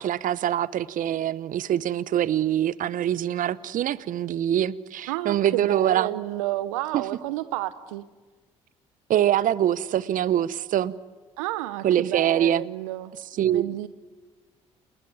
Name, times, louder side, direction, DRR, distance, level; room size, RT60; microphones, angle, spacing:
voice 1, 0.0-6.2 6.9-7.0 9.1-10.9 11.8-12.6 13.4-13.6, right 11 dB, 55° right, 19 dB, 1.0 m, -24 dB
voice 2, 5.1-8.0 11.4-13.1 13.4-13.9, right 16 dB, 80° right, 15 dB, 0.8 m, -31 dB
29.0 x 20.0 x 9.5 m, 1.4 s
hypercardioid pair, 55°, 16 cm